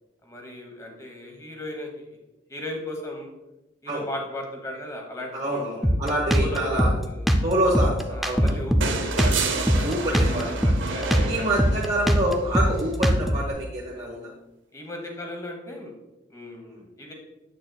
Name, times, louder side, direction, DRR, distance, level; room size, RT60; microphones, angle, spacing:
voice 1, 0.2-2.1 2.5-3.3 3.8-5.9 6.4-7.3 8.1-11.6 14.7-15.9 16.3-17.1, left 1 dB, 15° left, 2 dB, 1.1 m, -37 dB
voice 2, 5.3-6.9 7.4-8.5 9.8-10.4 11.3-14.3, right 1 dB, 35° right, -5 dB, 1.0 m, -26 dB
Drum kit, 5.8-13.5, equal, ahead, 0.4 m, -22 dB
sound 1, 8.8-12.1 13.7-13.8, right 4 dB, 75° right, 0.8 m, -30 dB
8.5 x 6.5 x 2.3 m, 0.98 s
head